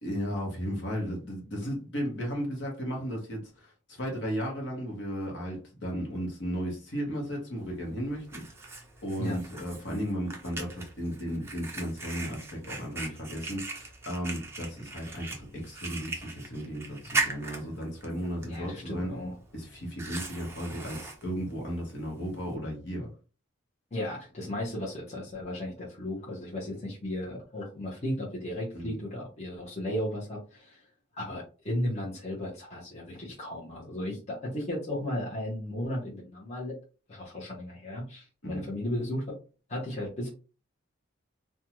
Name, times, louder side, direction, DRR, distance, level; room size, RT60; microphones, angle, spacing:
voice 1, 0.0-8.7 9.0-19.1 19.5-23.1 28.7-29.0 38.4-38.7, equal, 60° left, 1.0 m, -35 dB
Fire, 7.6-22.6, right 3 dB, 10° right, 0.4 m, -39 dB
voice 2, 18.4-19.3 23.9-30.8 31.2-36.7 37.1-39.3 39.7-40.3, left 1 dB, 30° left, 0.8 m, -35 dB
2.6 x 2.2 x 2.9 m
head